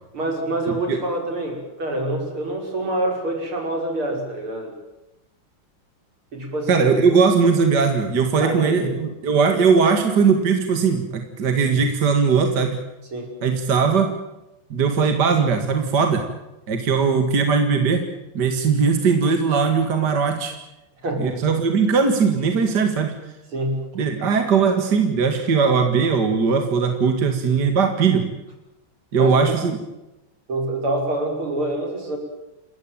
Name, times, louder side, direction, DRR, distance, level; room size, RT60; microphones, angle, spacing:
voice 1, 0.1-4.7 6.3-6.9 8.4-8.9 13.1-13.3 21.0-21.4 23.5-23.8 29.1-29.6 30.5-32.2, right 1 dB, 80° right, 2 dB, 6.3 m, -26 dB
voice 2, 6.7-12.8 13.4-14.1 14.7-16.2 16.7-18.0 18.3-20.5 21.2-23.1 23.9-28.3 29.1-29.8, right 5 dB, 50° right, 6 dB, 2.6 m, -19 dB
29.0 x 14.5 x 9.1 m, 0.97 s
omnidirectional pair, 2.3 m